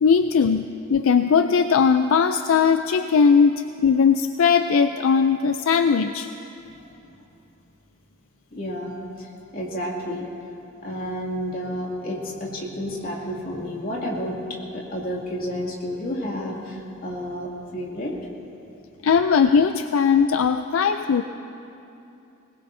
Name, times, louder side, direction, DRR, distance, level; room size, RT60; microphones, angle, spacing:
voice 1, 0.0-6.3 19.0-21.2, left 6 dB, 75° left, 8 dB, 0.4 m, -19 dB
voice 2, 6.6-7.1 8.5-10.3 10.8-14.4 14.7-18.1, equal, 45° left, -4 dB, 2.5 m, -31 dB
22.0 x 19.5 x 2.7 m, 2.8 s
head